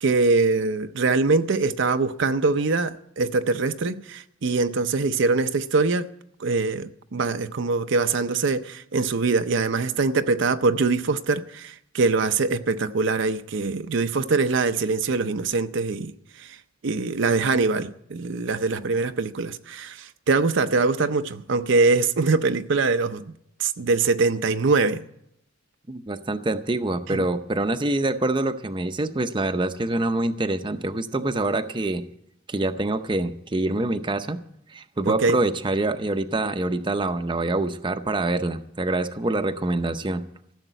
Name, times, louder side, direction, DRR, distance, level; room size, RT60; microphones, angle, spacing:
voice 1, 0.0-6.1 6.4-16.1 16.4-16.6 16.8-23.3 23.6-25.0 27.1-27.3 35.0-35.4, right 3 dB, 65° right, 0.6 m, -23 dB
voice 2, 25.9-32.0 32.5-34.4 34.7-40.2, right 2 dB, 25° right, 0.7 m, -25 dB
15.0 x 7.2 x 9.0 m
head